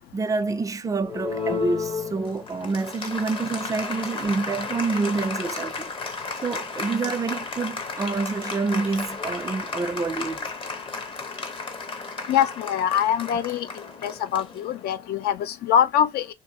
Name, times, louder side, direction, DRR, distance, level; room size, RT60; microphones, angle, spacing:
voice 1, 0.1-5.9 6.4-10.5, right 4 dB, 20° right, 0.4 m, -27 dB
Applause, 1.0-15.1, left 4 dB, 30° left, 0.7 m, -33 dB
voice 2, 12.3-13.7 14.0-16.3, left 9 dB, 70° left, 0.5 m, -23 dB
2.6 x 2.6 x 3.9 m
cardioid pair, 110°, 17 cm